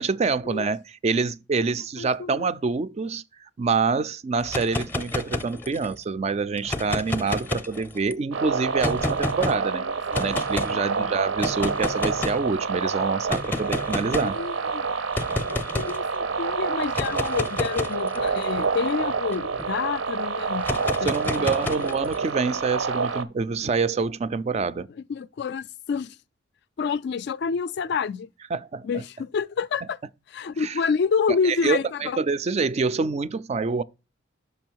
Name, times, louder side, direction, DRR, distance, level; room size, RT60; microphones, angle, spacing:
voice 1, 0.0-9.8 10.1-14.4 21.0-24.9 28.5-29.0 30.6-30.8 31.4-33.8, right 4 dB, 35° right, 0.3 m, -26 dB
voice 2, 2.0-2.5 9.7-9.8 10.1-11.1 14.2-14.9 15.5-20.7 21.0-21.9 25.1-26.2 26.8-28.3 28.8-30.0 30.3-32.2, left 5 dB, 60° left, 0.3 m, -28 dB
sound 1, 4.4-6.0 6.6-8.1 8.8-9.6 10.1-10.7 11.4-12.5 13.3-14.4 15.1-16.0 16.8-19.7 20.6-22.2, left 2 dB, 10° left, 0.6 m, -30 dB
sound 2, 8.3-23.2, right 4 dB, 85° right, 0.7 m, -28 dB
6.1 x 5.4 x 4.4 m
head